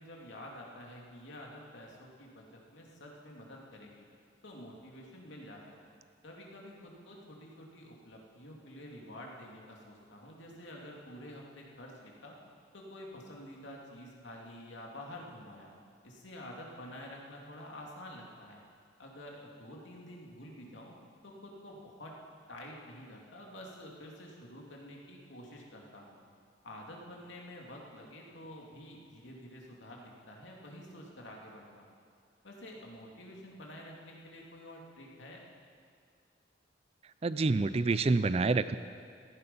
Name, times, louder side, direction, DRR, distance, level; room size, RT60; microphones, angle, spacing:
voice 1, 0.0-4.0 4.4-5.9 6.2-12.3 12.7-15.7 16.0-18.6 19.0-20.9 21.2-22.1 22.5-26.1 26.6-31.9 32.4-35.4, left 1 dB, 70° left, -1 dB, 2.7 m, -49 dB
voice 2, 37.2-38.8, right 3 dB, 30° right, 13 dB, 0.4 m, -27 dB
17.0 x 15.5 x 5.5 m, 2.2 s
head